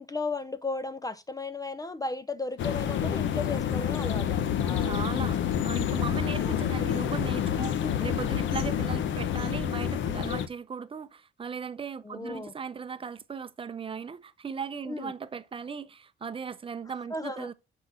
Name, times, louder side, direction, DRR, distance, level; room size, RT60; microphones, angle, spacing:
voice 1, 0.0-4.9 6.2-6.7 7.8-8.1 12.0-12.5 14.8-15.1 17.1-17.5, left 3 dB, 20° left, 0.5 m, -35 dB
sound 1, 2.6-10.5, left 9 dB, 70° left, 0.7 m, -28 dB
voice 2, 4.8-17.5, right 6 dB, 25° right, 0.6 m, -37 dB
5.9 x 4.1 x 5.4 m
cardioid pair, 90°, 20 cm